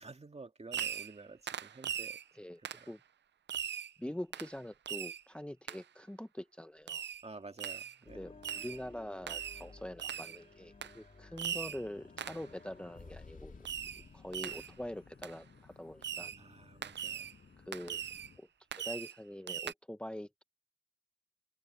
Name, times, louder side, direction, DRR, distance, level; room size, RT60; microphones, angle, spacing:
voice 1, 0.0-2.2 2.8-2.9 7.2-8.2 16.2-17.3, right 3 dB, 35° right, 2.0 m, -51 dB
Fireworks, 0.7-1.2 1.5-2.2 2.6-2.9 3.5-3.9 4.3-4.5 4.9-5.2 5.7-5.8 6.9-7.2 7.6-8.0 8.4-8.8 9.3-9.6 10.0-10.4 10.8-11.0 11.4-11.8 12.2-12.5 13.6-14.0 14.3-14.7 15.2-15.3 16.0-16.4 16.8-17.3 17.7-18.3 18.7-19.2 19.5-19.7, right 9 dB, 90° right, 0.5 m, -40 dB
voice 2, 4.0-7.0 8.2-13.6 14.1-16.3 17.6-18.0 18.4-20.4, left 1 dB, 5° left, 0.9 m, -44 dB
sound 1, 8.1-17.5, left 3 dB, 50° left, 2.8 m, -57 dB
sound 2, 11.6-18.4, left 5 dB, 75° left, 7.4 m, -60 dB
wide cardioid pair, 75°, 18 cm